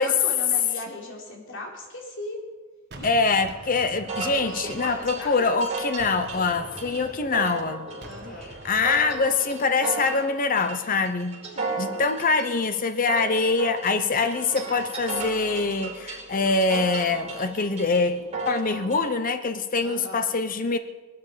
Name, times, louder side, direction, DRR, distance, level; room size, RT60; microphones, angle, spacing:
voice 1, 0.0-2.4 3.0-3.1 4.5-5.6 8.0-8.5 11.5-12.1 19.8-20.3, left 1 dB, 65° left, -1 dB, 3.8 m, -38 dB
Gunshot gunfire, 2.9-5.6 6.0-9.5, right 2 dB, 55° right, 1.6 m, -45 dB
voice 2, 3.0-7.9 8.6-11.4 11.8-20.8, left 4 dB, 40° left, 9 dB, 0.8 m, -24 dB
sound 1, 4.1-19.1, right 3 dB, 30° right, 5.4 m, -35 dB
21.0 x 12.5 x 5.1 m, 1.3 s
head